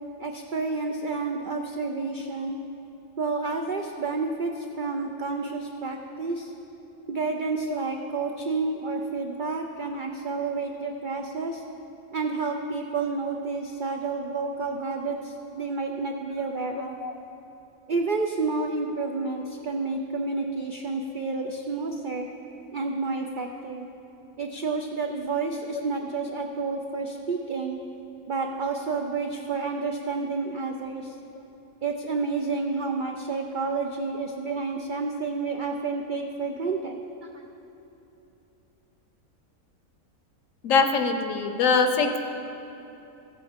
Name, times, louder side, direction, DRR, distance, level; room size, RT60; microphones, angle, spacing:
voice 1, 0.2-2.6 3.2-6.5 7.1-11.6 12.1-17.0 17.9-22.3 22.7-23.9 24.4-27.8 28.3-31.1 31.8-37.4, right 4 dB, 85° right, 3 dB, 0.4 m, -30 dB
voice 2, 40.6-42.2, left 4 dB, 65° left, 6 dB, 1.0 m, -22 dB
15.0 x 8.5 x 3.6 m, 3.0 s
omnidirectional pair, 1.6 m